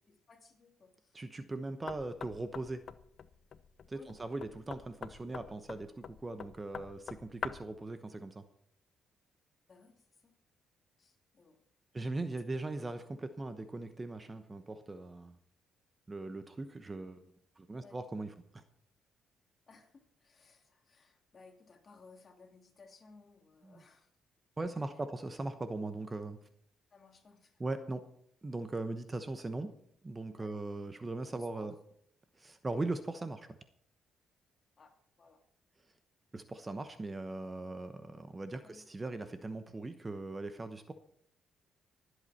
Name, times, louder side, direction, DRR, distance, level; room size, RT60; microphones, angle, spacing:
voice 1, 0.1-1.2 3.9-4.2 9.7-10.3 11.0-11.6 17.8-18.0 19.7-24.1 24.7-25.0 26.9-27.6 30.4-30.6 31.3-31.7 34.8-35.4 38.6-38.9, left 4 dB, 40° left, 3 dB, 2.7 m, -60 dB
voice 2, 1.1-2.8 3.9-8.4 11.9-15.3 16.1-17.2 17.6-18.3 18.5-18.6 24.6-26.4 27.6-28.0 28.4-29.7 30.0-31.7 32.4-33.6 36.3-40.9, right 2 dB, 25° right, 10 dB, 1.0 m, -39 dB
Knock, 1.9-7.8, left 7 dB, 55° left, 0.7 m, -46 dB
23.5 x 8.1 x 4.3 m, 0.67 s
cardioid pair, 90°, 0 cm